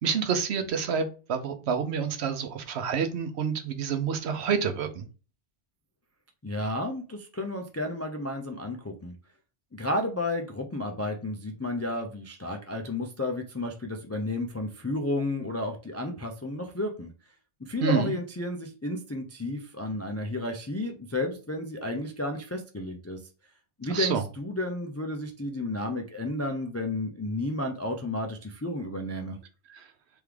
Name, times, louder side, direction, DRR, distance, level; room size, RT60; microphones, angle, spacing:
voice 1, 0.0-5.0 17.8-18.1 23.9-24.2 29.7-29.9, right 6 dB, 70° right, 1.0 m, -28 dB
voice 2, 6.4-9.1 9.7-17.1 17.6-23.2 23.8-29.4, left 1 dB, 25° left, 0.3 m, -32 dB
3.6 x 3.5 x 3.3 m
omnidirectional pair, 1.2 m